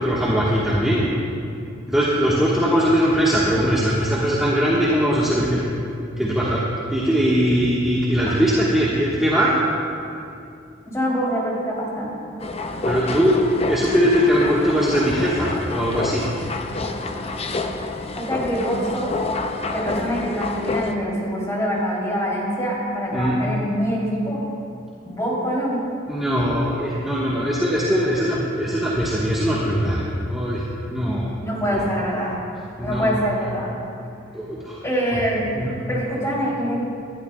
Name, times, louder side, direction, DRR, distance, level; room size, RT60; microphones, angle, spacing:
voice 1, 0.0-1.1 1.9-5.6 6.2-6.6 6.9-9.5 12.8-13.4 13.7-16.2 23.1-23.4 26.1-30.6 30.9-31.3 31.7-31.8 32.8-33.1 34.3-34.8 35.6-35.7, equal, ahead, -8 dB, 1.3 m, -20 dB
voice 2, 10.9-12.2 18.2-19.1 19.7-24.4 25.0-25.8 31.4-32.4 32.8-33.7 34.8-35.5 35.9-36.8, equal, 15° left, -5 dB, 3.1 m, -24 dB
sound 1, 12.4-20.9, left 2 dB, 30° left, 0.6 m, -28 dB
20.5 x 12.0 x 2.3 m, 2.5 s
head